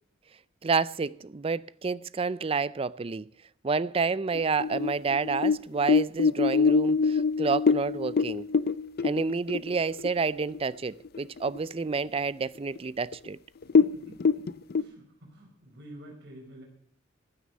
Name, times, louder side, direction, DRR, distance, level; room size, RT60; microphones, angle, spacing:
voice 1, 0.6-3.3 3.6-8.5 9.0-13.4, right 4 dB, 30° right, 0.4 m, -29 dB
sound 1, 4.3-10.2 10.5-10.6 11.0-11.6 12.0-12.1 12.8-12.9 13.1-13.3 13.6-14.8, left 5 dB, 50° left, 0.5 m, -24 dB
voice 2, 13.8-14.5 14.7-16.7, right 1 dB, 60° right, 4.7 m, -48 dB
15.5 x 9.5 x 5.3 m
head